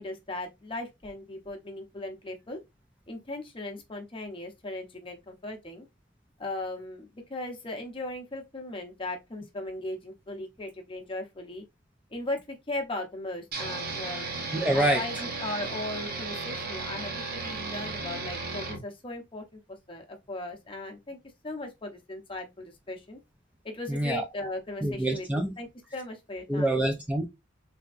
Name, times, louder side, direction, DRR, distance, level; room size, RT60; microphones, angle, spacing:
voice 1, 0.0-2.6 3.1-5.9 6.4-11.6 12.1-14.3 14.7-19.6 19.9-21.2 21.4-23.2 23.6-25.7 25.9-26.8, left 2 dB, 25° left, 0.7 m, -38 dB
sound 1, 13.5-18.8, right 3 dB, 50° right, 0.8 m, -35 dB
voice 2, 14.5-15.0 23.9-24.2 24.8-25.6 26.5-27.3, right 1 dB, 5° right, 0.4 m, -26 dB
3.4 x 2.8 x 2.4 m
head